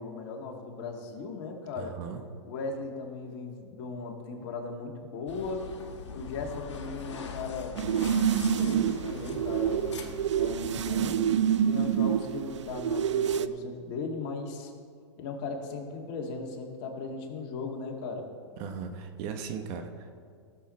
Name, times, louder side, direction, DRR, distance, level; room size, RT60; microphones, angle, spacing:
voice 1, 0.0-2.0 2.4-5.7 6.1-7.8 8.4-10.0 10.3-11.2 11.6-14.7 15.2-18.3, left 4 dB, 50° left, 2 dB, 2.0 m, -37 dB
voice 2, 1.8-2.2 18.6-20.1, right 6 dB, 45° right, 6 dB, 1.1 m, -37 dB
sound 1, 5.3-11.2, left 5 dB, 85° left, 1.3 m, -42 dB
sound 2, 7.8-13.5, right 8 dB, 85° right, 0.5 m, -27 dB
17.0 x 7.1 x 4.3 m, 2.2 s
hypercardioid pair, 125°, 15 cm